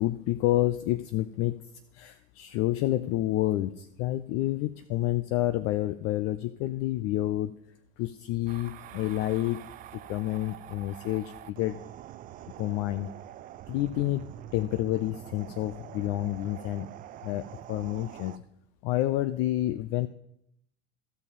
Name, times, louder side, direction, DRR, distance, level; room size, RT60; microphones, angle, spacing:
voice 1, 0.0-1.6 1.9-7.5 8.0-11.8 12.6-13.1 13.7-16.9 17.2-18.4 18.8-20.1, left 15 dB, 40° left, 12 dB, 0.5 m, -29 dB
sound 1, 8.5-18.4, right 13 dB, 25° right, 0.4 m, -45 dB
13.5 x 6.7 x 5.3 m, 0.74 s
figure-of-eight pair, 80°, 36 cm